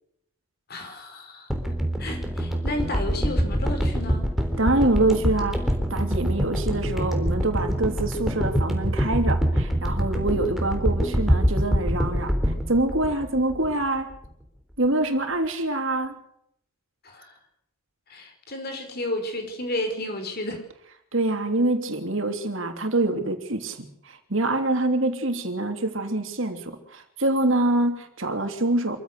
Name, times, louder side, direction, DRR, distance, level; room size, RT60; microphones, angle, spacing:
voice 1, 0.7-1.5 2.0-4.3 17.0-17.3 18.1-20.6, left 1 dB, 45° left, 5 dB, 5.1 m, -32 dB
sound 1, 1.5-13.8 14.1-14.3, equal, ahead, 3.6 m, -25 dB
voice 2, 4.6-5.6 5.9-14.1 14.8-16.2 21.1-29.0, right 2 dB, 60° right, 6 dB, 3.0 m, -25 dB
26.5 x 15.5 x 6.7 m, 0.74 s
head